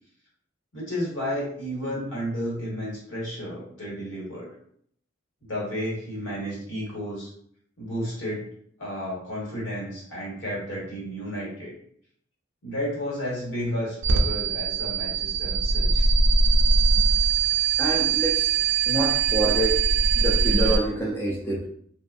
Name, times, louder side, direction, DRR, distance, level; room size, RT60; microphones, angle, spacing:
voice 1, 0.7-4.5 5.4-7.3 7.8-8.5 8.8-11.7 12.6-16.1, equal, 75° left, -6 dB, 1.4 m, -32 dB
sound 1, 14.0-20.8, right 4 dB, 75° right, 0.4 m, -21 dB
voice 2, 17.8-18.5 18.9-19.8 20.1-21.6, right 1 dB, 10° left, -3 dB, 0.3 m, -26 dB
2.4 x 2.3 x 2.4 m, 0.65 s
head